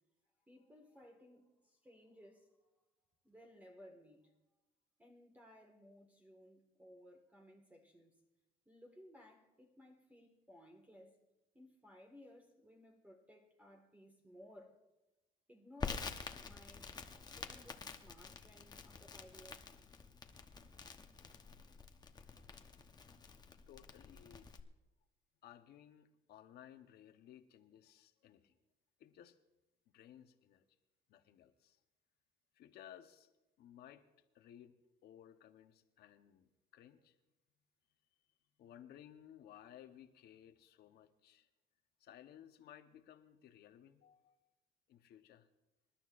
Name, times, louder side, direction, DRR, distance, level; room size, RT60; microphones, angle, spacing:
voice 1, 0.5-2.6 3.2-4.3 5.0-8.2 8.7-11.2 11.5-14.8 15.5-19.7, equal, 10° right, 1.8 m, -60 dB
Crackle, 15.8-24.6, left 4 dB, 25° left, 1.0 m, -48 dB
voice 2, 23.5-24.6 25.4-28.6 29.0-29.4 29.9-30.6 31.1-31.8 32.5-33.3 33.6-34.0 34.3-34.8 35.0-37.2 38.6-41.5 42.0-44.4 44.9-45.5, left 10 dB, 70° left, 1.1 m, -59 dB
26.5 x 11.5 x 2.6 m
cardioid pair, 110°, 17 cm